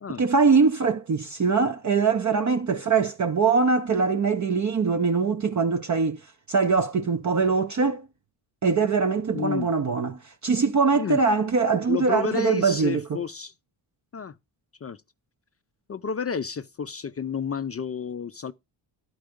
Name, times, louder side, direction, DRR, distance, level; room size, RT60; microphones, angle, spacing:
voice 1, 0.2-6.2 6.5-8.0 8.6-13.0, right 5 dB, 35° right, 0.7 m, -22 dB
voice 2, 9.3-9.7 10.9-11.2 11.9-13.5 14.1-14.3 14.8-15.0 15.9-18.5, left 6 dB, 30° left, 0.4 m, -30 dB
11.5 x 4.7 x 5.0 m
wide cardioid pair, 135°, 50 cm